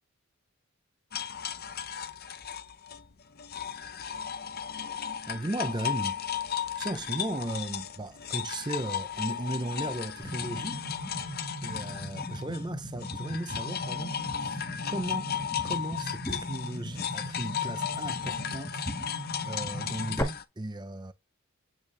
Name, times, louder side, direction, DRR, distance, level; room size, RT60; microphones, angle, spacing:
sound 1, 1.1-12.7 13.0-20.4, left 8 dB, 45° left, 0.7 m, -35 dB
voice 1, 5.3-6.2 6.8-10.9 11.6-14.1 14.4-15.3 15.6-18.9 19.4-21.1, right 1 dB, 20° right, 0.6 m, -36 dB
sound 2, 10.2-20.2, equal, 10° left, 1.8 m, -38 dB
8.7 x 5.9 x 3.4 m
head